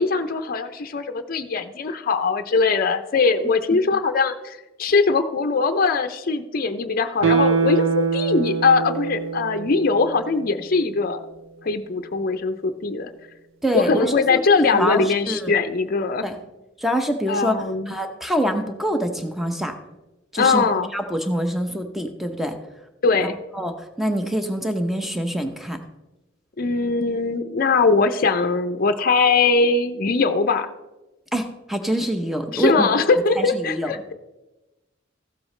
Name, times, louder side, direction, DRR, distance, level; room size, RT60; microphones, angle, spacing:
voice 1, 0.0-11.2 11.6-13.1 13.7-16.3 17.3-18.0 20.4-20.9 23.0-23.4 26.6-30.7 32.5-34.1, left 4 dB, 45° left, 9 dB, 0.5 m, -21 dB
Guitar, 7.2-10.5 10.8-10.9, right 5 dB, 85° right, 0.5 m, -23 dB
voice 2, 13.6-15.5 16.2-16.4 16.8-19.7 20.3-20.6 20.9-22.6 23.2-25.8 31.3-32.9 33.4-33.9, equal, ahead, 6 dB, 0.7 m, -25 dB
14.5 x 7.7 x 3.2 m, 1.0 s
head